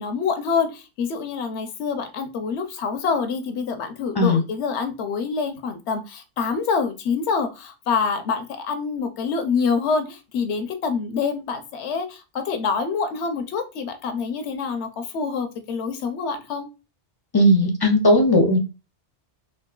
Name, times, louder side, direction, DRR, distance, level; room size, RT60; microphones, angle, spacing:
voice 1, 0.0-16.7, left 5 dB, 85° left, 7 dB, 0.9 m, -26 dB
voice 2, 17.3-18.6, left 1 dB, 40° left, 4 dB, 0.3 m, -17 dB
3.7 x 2.5 x 2.3 m, 0.29 s
omnidirectional pair, 1.1 m